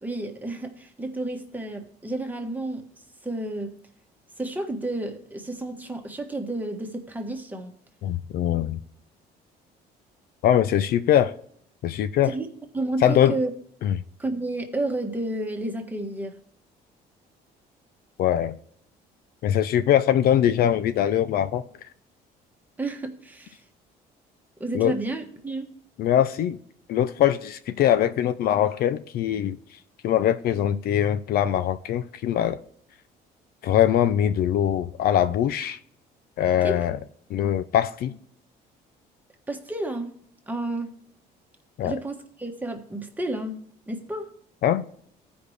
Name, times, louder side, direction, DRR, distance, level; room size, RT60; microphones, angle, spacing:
voice 1, 0.0-2.9 3.2-3.7 4.4-7.7 12.2-12.5 12.7-13.5 14.2-16.4 22.8-23.6 24.6-25.7 36.6-36.8 39.5-40.1 40.5-40.9 41.8-43.6 43.9-44.3, right 2 dB, 10° right, 1.4 m, -31 dB
voice 2, 8.0-8.8 10.4-11.3 11.8-12.3 13.0-13.4 13.8-13.9 18.2-18.6 19.4-21.6 24.7-24.9 26.0-26.6 26.9-29.6 30.0-32.6 33.6-35.8 36.4-37.0 37.3-38.1 41.8-41.9 44.6-44.8, left 10 dB, 65° left, 0.5 m, -22 dB
15.0 x 5.2 x 3.2 m
cardioid pair, 110°, 17 cm